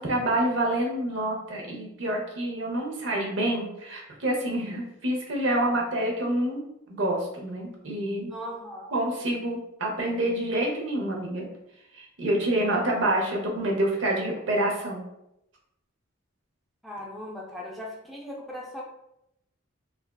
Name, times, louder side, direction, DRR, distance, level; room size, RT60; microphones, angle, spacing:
voice 1, 0.0-6.6 6.9-8.3 8.9-11.5 11.9-15.0, right 1 dB, 70° right, 0 dB, 0.7 m, -27 dB
voice 2, 8.3-8.9 16.8-18.8, equal, ahead, -4 dB, 0.4 m, -38 dB
3.3 x 2.3 x 2.3 m, 0.83 s
head